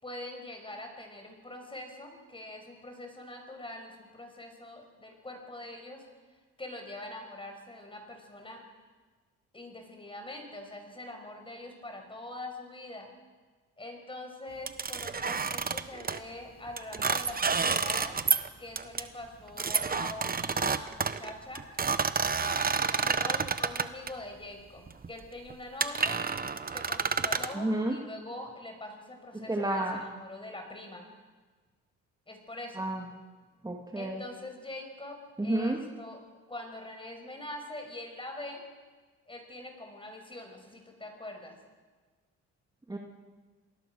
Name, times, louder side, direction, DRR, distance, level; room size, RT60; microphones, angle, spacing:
voice 1, 0.0-6.0 6.6-8.6 9.5-13.1 13.8-18.2 18.6-21.6 22.3-26.2 26.7-31.1 32.3-32.9 33.9-36.2 36.5-38.6 39.3-41.6, left 1 dB, 15° left, 4 dB, 6.0 m, -43 dB
sound 1, 14.7-16.2 16.8-18.5 18.8-19.0 19.6-24.1 24.9-25.1 25.5-25.6 25.8-27.5, right 5 dB, 30° right, 1.2 m, -29 dB
voice 2, 27.5-28.0 29.3-30.0 32.8-33.1 33.6-34.2 35.4-35.8 42.9-43.0, right 1 dB, 15° right, 1 dB, 2.4 m, -30 dB
27.0 x 20.0 x 6.4 m, 1.4 s
cardioid pair, 90°, 30 cm